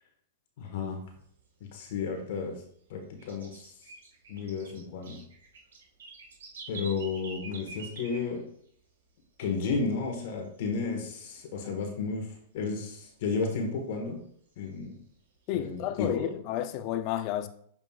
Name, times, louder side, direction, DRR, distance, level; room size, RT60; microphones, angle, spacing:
voice 1, 0.6-1.0 1.7-2.5 2.9-3.7 4.3-5.2 6.7-8.4 9.4-14.2 14.6-15.0 15.5-16.3, left 4 dB, 60° left, 1.4 m, -32 dB
sound 1, 1.0-2.4 2.8-8.8 9.2-9.3 9.6-10.1 10.4-11.6 11.9-12.0 12.3-12.4 12.9-14.0 14.5-15.8, right 4 dB, 85° right, 2.0 m, -47 dB
voice 2, 15.5-17.5, left 11 dB, 45° left, 0.5 m, -31 dB
7.3 x 5.2 x 2.5 m
hypercardioid pair, 130°, 0 cm